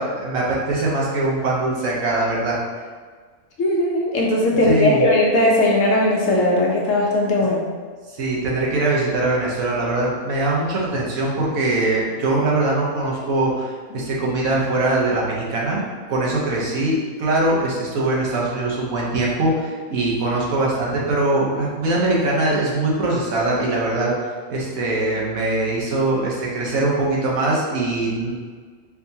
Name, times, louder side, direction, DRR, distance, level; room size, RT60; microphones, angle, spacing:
voice 1, 0.0-2.6 4.6-5.1 8.2-24.1 24.5-28.3, right 2 dB, 70° right, -4 dB, 1.2 m, -22 dB
voice 2, 3.6-7.7, left 1 dB, 65° left, -3 dB, 0.9 m, -18 dB
4.4 x 2.7 x 2.7 m, 1.5 s
omnidirectional pair, 1.6 m